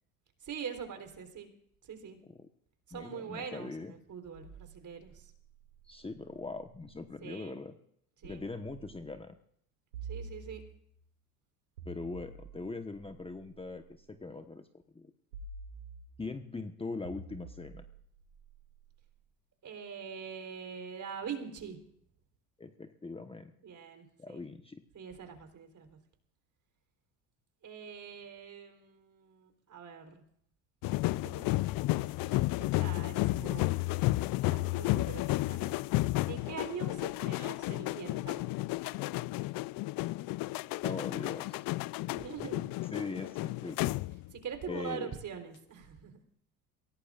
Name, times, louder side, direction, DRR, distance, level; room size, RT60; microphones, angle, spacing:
voice 1, 0.4-1.5 1.8-2.2 2.9-5.3 7.2-7.6 8.2-8.4 10.1-10.6 19.6-21.8 23.6-24.4 24.9-26.0 27.6-30.2 31.2-31.6 32.2-33.7 34.5-35.7 36.3-38.4 42.1-42.6 44.3-46.2, right 7 dB, 40° right, 6 dB, 3.8 m, -43 dB
voice 2, 2.9-3.9 5.9-7.8 8.2-9.3 11.8-14.7 14.9-15.1 16.2-17.8 22.6-23.5 24.2-24.8 40.8-41.6 42.9-44.0 44.7-45.1, left 3 dB, 10° left, 7 dB, 1.2 m, -41 dB
sound 1, 4.3-7.1 8.2-9.3 9.9-11.0 11.8-14.0 15.3-16.4 17.0-19.2, right 4 dB, 90° right, 2.4 m, -49 dB
sound 2, 30.8-44.4 44.7-45.0, left 19 dB, 50° left, 0.5 m, -32 dB
23.5 x 17.5 x 2.5 m, 0.68 s
hypercardioid pair, 80°, 45 cm